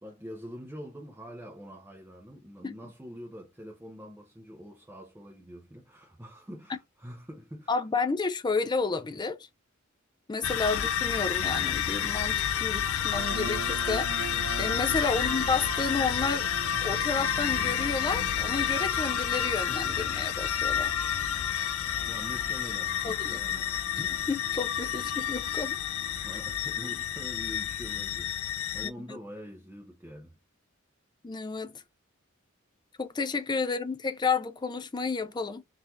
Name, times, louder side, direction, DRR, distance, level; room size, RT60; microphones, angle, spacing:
voice 1, 0.0-7.7 10.7-10.8 15.1-15.4 22.0-24.1 26.2-30.4, equal, 10° right, 0.7 m, -45 dB
voice 2, 7.7-9.4 10.3-16.5 16.8-20.9 23.0-23.4 24.0-25.8 28.8-29.2 31.2-31.8 33.0-35.6, left 4 dB, 20° left, 0.4 m, -31 dB
sound 1, 10.4-28.9, left 9 dB, 85° left, 0.4 m, -30 dB
sound 2, 13.2-27.7, right 6 dB, 70° right, 0.5 m, -43 dB
3.9 x 2.7 x 3.0 m
head